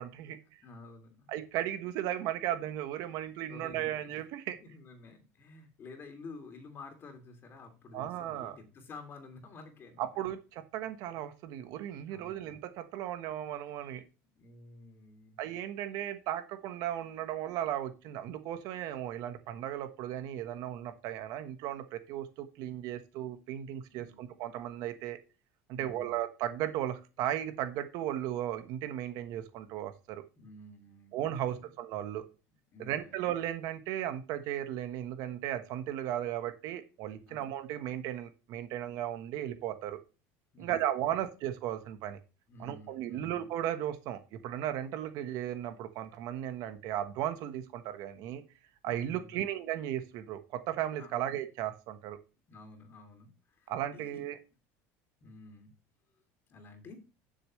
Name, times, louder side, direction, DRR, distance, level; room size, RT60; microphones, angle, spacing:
voice 1, 0.0-0.6 1.3-4.6 7.9-8.6 10.0-14.0 15.4-25.2 25.7-30.2 31.1-32.3 32.8-40.0 40.6-42.2 42.6-48.4 48.8-52.2 53.7-54.4, right 11 dB, 60° right, 9 dB, 1.3 m, -36 dB
voice 2, 0.6-1.3 3.5-4.1 4.6-10.3 12.1-12.6 13.8-14.0 14.3-15.4 23.9-24.3 25.7-26.1 30.4-31.7 32.7-33.1 37.3-37.4 40.5-41.2 42.5-43.5 48.8-49.3 51.0-51.1 52.5-54.2 55.2-55.7 56.5-57.0, left 3 dB, 35° left, 5 dB, 2.9 m, -51 dB
11.5 x 6.8 x 3.2 m, 0.30 s
cardioid pair, 140°, 7 cm